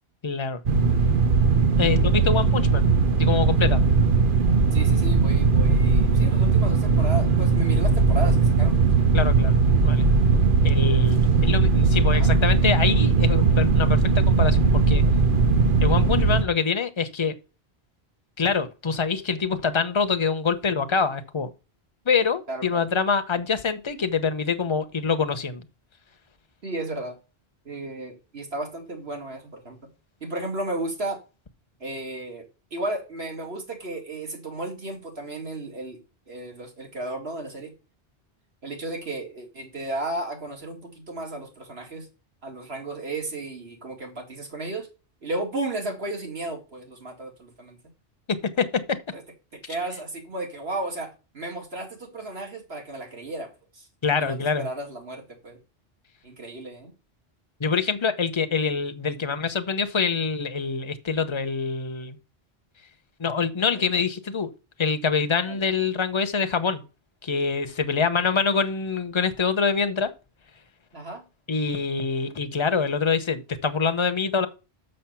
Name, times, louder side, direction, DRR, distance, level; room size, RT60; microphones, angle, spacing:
voice 1, 0.2-0.6 1.8-2.8 3.2-3.8 9.1-9.5 9.8-10.0 10.6-15.0 15.8-17.4 18.4-21.5 22.1-25.7 48.3-49.0 54.0-54.7 57.6-62.2 63.2-64.5 64.8-66.8 67.2-70.1 71.5-74.5, left 5 dB, 30° left, 0.8 m, -25 dB
sound 1, 0.7-16.4, right 4 dB, 55° right, 1.0 m, -19 dB
voice 2, 4.7-8.9 11.3-11.5 12.1-12.3 22.5-22.9 26.6-27.2 27.6-29.8 30.2-31.2 31.8-36.0 36.3-37.7 38.6-42.1 42.4-44.9 45.2-47.8 49.1-49.2 49.5-53.9 54.2-55.6 56.2-56.9 63.7-63.9 65.5-65.6 70.9-71.2, right 2 dB, 70° right, 2.7 m, -34 dB
6.5 x 6.5 x 5.7 m
omnidirectional pair, 1.1 m